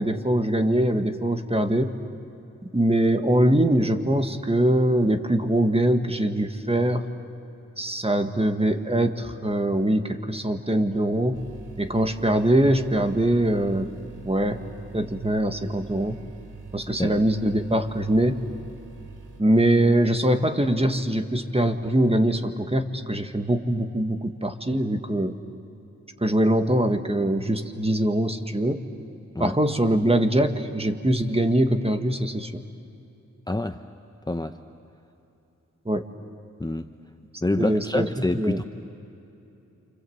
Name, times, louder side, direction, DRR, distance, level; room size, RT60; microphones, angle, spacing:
voice 1, 0.0-1.9 2.7-7.0 7.8-11.4 11.8-13.9 14.2-14.6 14.9-16.2 16.7-18.4 19.4-25.3 26.2-28.8 29.4-32.6 35.9-36.0 37.6-38.1 38.4-38.6, right 1 dB, 20° right, 7 dB, 1.8 m, -23 dB
sound 1, 11.3-19.4, right 4 dB, 80° right, 2.9 m, -44 dB
voice 2, 33.5-33.8 34.3-34.6 36.6-36.9 37.4-38.6, left 2 dB, 15° left, 7 dB, 0.8 m, -26 dB
29.0 x 25.5 x 8.0 m, 2.9 s
cardioid pair, 40°, 31 cm